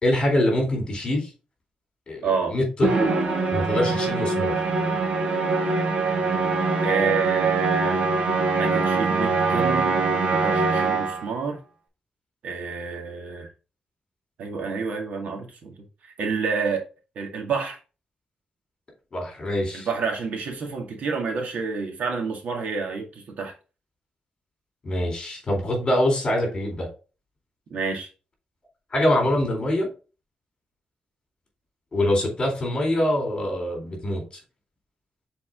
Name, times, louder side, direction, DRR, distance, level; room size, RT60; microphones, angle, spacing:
voice 1, 0.0-1.3 2.1-2.9 3.5-4.5 19.1-19.9 24.8-26.9 28.9-29.9 31.9-34.2, left 1 dB, 35° left, 3.8 m, -24 dB
voice 2, 2.2-2.6 6.8-8.0 8.6-11.6 12.4-13.5 14.4-15.8 16.0-16.9 17.2-17.8 19.7-23.5 27.7-28.1, right 5 dB, 75° right, 2.0 m, -28 dB
Musical instrument, 2.8-11.3, right 3 dB, 50° right, 2.0 m, -23 dB
6.9 x 4.2 x 3.8 m
wide cardioid pair, 135°, 3 cm